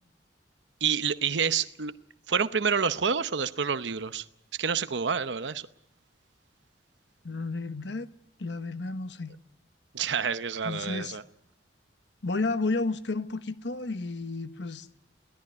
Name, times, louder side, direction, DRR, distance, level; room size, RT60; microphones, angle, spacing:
voice 1, 0.8-1.9 2.3-4.2 4.6-5.6 9.9-11.2, right 6 dB, 80° right, 0.8 m, -28 dB
voice 2, 7.2-8.1 8.4-9.3 10.6-11.2 12.2-14.9, left 3 dB, 75° left, 1.1 m, -32 dB
22.5 x 16.5 x 9.6 m
head